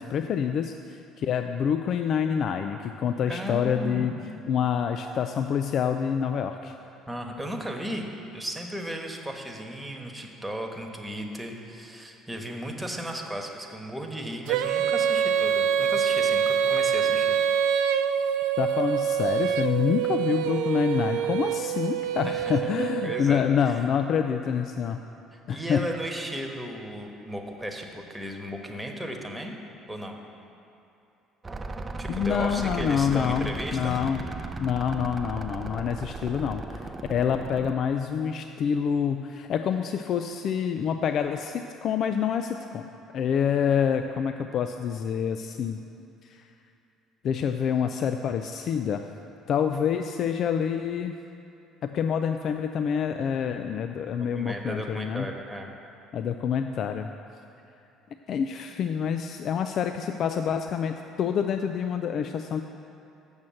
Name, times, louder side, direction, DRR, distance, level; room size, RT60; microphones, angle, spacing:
voice 1, 0.0-4.1 4.5-6.7 18.6-25.0 25.5-25.9 32.1-34.2 34.6-42.9 43.1-45.8 46.2-46.5 47.2-49.0 49.5-51.1 51.8-55.3 56.1-57.1 58.3-62.6, left 7 dB, 60° left, 7 dB, 0.3 m, -27 dB
voice 2, 3.3-4.3 7.1-8.1 8.3-17.4 22.2-22.7 23.0-23.7 25.3-29.5 29.9-30.2 32.0-34.1 54.3-55.7, equal, 5° right, 1 dB, 1.2 m, -35 dB
Female singing, 14.5-23.3, right 8 dB, 80° right, 0.3 m, -25 dB
sound 1, 31.4-37.7, right 3 dB, 25° right, 0.5 m, -36 dB
7.2 x 6.4 x 7.6 m, 2.7 s
supercardioid pair, 75°, 0 cm